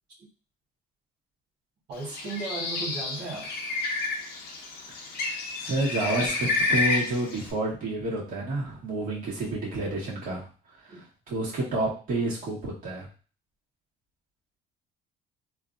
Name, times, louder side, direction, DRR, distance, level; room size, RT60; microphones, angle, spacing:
voice 1, 1.9-3.5 10.9-11.0, right 3 dB, 75° right, -9 dB, 1.2 m, -36 dB
Bird, 2.0-7.5, left 3 dB, 70° left, 0.8 m, -30 dB
voice 2, 5.6-10.5 11.3-13.1, right 2 dB, 55° right, -5 dB, 1.6 m, -29 dB
3.3 x 2.5 x 2.5 m, 0.37 s
cardioid pair, 110°, 17 cm